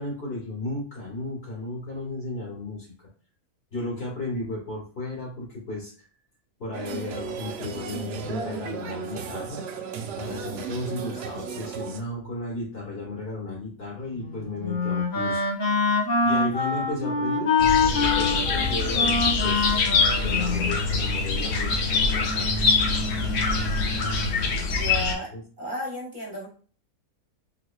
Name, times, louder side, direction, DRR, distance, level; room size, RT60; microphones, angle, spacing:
voice 1, 0.0-2.9 3.7-5.9 6.6-9.6 10.2-15.4 16.2-17.6 17.9-19.9 20.1-22.5 25.3-25.4, left 2 dB, 45° left, -3 dB, 1.2 m, -34 dB
sound 1, 6.7-12.0, right 6 dB, 75° right, 0.5 m, -35 dB
Wind instrument woodwind instrument, 14.1-21.3, left 4 dB, 80° left, 2.1 m, -25 dB
sound 2, 17.6-25.1, left 4 dB, 65° left, 0.9 m, -24 dB
voice 2, 24.7-25.3 25.6-26.5, right 1 dB, 35° right, -5 dB, 1.2 m, -33 dB
3.8 x 2.9 x 2.3 m, 0.42 s
omnidirectional pair, 1.6 m